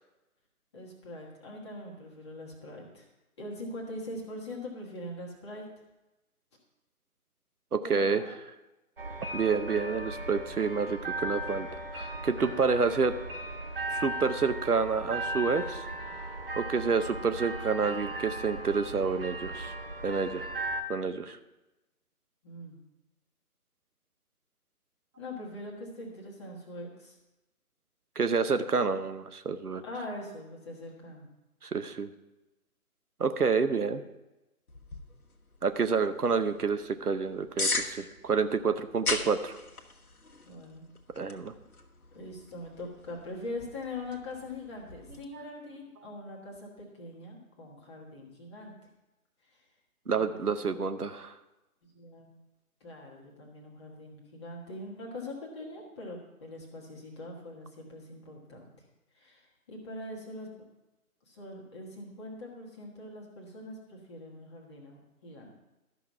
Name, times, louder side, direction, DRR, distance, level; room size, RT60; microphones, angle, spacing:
voice 1, 0.7-3.1 3.4-5.6 7.8-8.3 22.4-22.8 25.2-27.2 29.8-31.3 40.5-40.8 41.2-41.4 42.1-48.7 49.5-49.6 50.0-50.7 51.9-52.3 52.8-58.6 59.1-60.5 61.3-65.5, left 1 dB, 20° left, -3 dB, 1.4 m, -42 dB
voice 2, 7.7-8.2 9.3-11.7 11.9-13.1 13.9-15.9 16.6-19.7 20.0-20.5 20.9-21.4 28.2-29.8 31.6-32.1 33.2-34.0 35.6-39.6 41.2-41.5 45.3-45.5 50.1-51.3, right 5 dB, 80° right, 10 dB, 0.9 m, -28 dB
sound 1, 9.0-20.8, right 1 dB, 40° right, 0.8 m, -37 dB
sound 2, 34.7-45.3, left 3 dB, 70° left, 1.3 m, -39 dB
12.5 x 6.0 x 5.8 m, 1.0 s
figure-of-eight pair, 150°, 45 cm